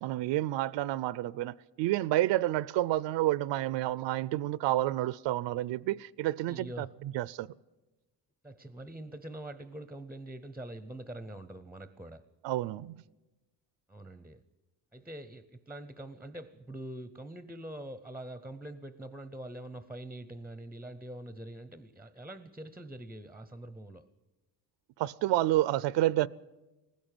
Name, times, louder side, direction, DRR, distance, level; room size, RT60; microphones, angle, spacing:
voice 1, 0.0-6.9 7.1-7.5 12.4-13.0 25.0-26.3, right 15 dB, 85° right, 0.6 m, -29 dB
voice 2, 6.4-6.9 8.4-12.3 13.9-14.4 14.9-24.1, right 1 dB, 5° right, 0.6 m, -44 dB
19.0 x 15.5 x 9.0 m
cardioid pair, 135°, 42 cm